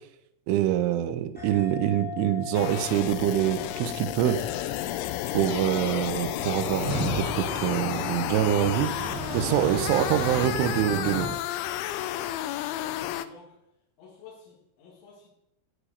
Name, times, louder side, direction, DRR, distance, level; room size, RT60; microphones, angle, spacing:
voice 1, 0.5-4.4 5.3-8.9 9.3-11.3, right 12 dB, 80° right, 10 dB, 3.0 m, -25 dB
sound 1, 1.4-10.4, left 10 dB, ahead, 3.0 m, -42 dB
sound 2, 2.5-13.3, left 13 dB, 85° left, 2.7 m, -32 dB
sound 3, 6.3-11.3, right 1 dB, 50° right, 2.3 m, -34 dB
voice 2, 12.6-13.6 14.0-15.3, left 5 dB, 65° left, -4 dB, 4.3 m, -52 dB
10.0 x 7.5 x 6.5 m, 0.82 s
omnidirectional pair, 6.0 m